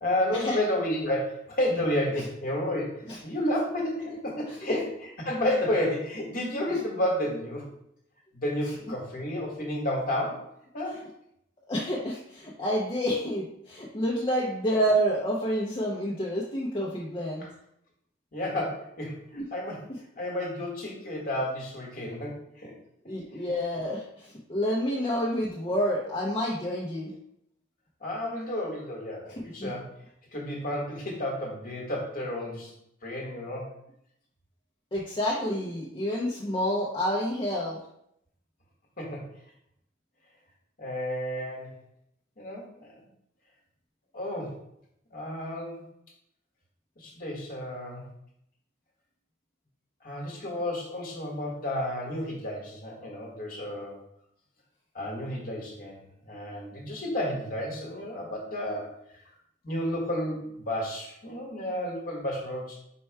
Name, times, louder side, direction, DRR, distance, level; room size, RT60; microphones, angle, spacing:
voice 1, 0.0-7.7 8.3-10.5 10.7-11.0 18.3-19.8 20.2-22.7 23.3-23.4 28.0-29.9 30.3-32.7 33.0-33.7 39.0-39.3 40.8-41.8 42.4-43.0 44.1-44.6 45.1-45.8 47.0-48.0 50.0-54.0 54.9-56.0 56.3-58.9 59.6-62.8, left 1 dB, 45° left, -1 dB, 1.1 m, -31 dB
voice 2, 11.7-17.4 19.3-19.4 23.1-27.1 29.6-29.7 34.9-37.8, equal, 25° left, -5 dB, 0.5 m, -28 dB
4.3 x 2.2 x 4.4 m, 0.73 s
head